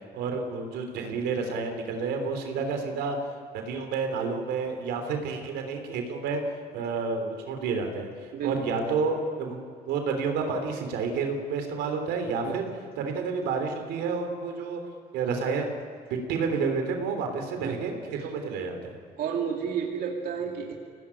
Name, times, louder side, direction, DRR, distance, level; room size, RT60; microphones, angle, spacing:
voice 1, 0.1-3.2 3.7-6.4 6.7-8.1 8.4-9.6 9.9-12.7 13.0-14.8 15.1-15.7 16.3-19.0, right 4 dB, 85° right, 5 dB, 3.5 m, -30 dB
voice 2, 8.3-8.8 12.4-12.8 17.6-17.8 18.2-18.3 19.2-20.7, right 7 dB, 65° right, 0 dB, 2.7 m, -31 dB
24.5 x 18.0 x 10.0 m, 2.2 s
cardioid pair, 110°, 17 cm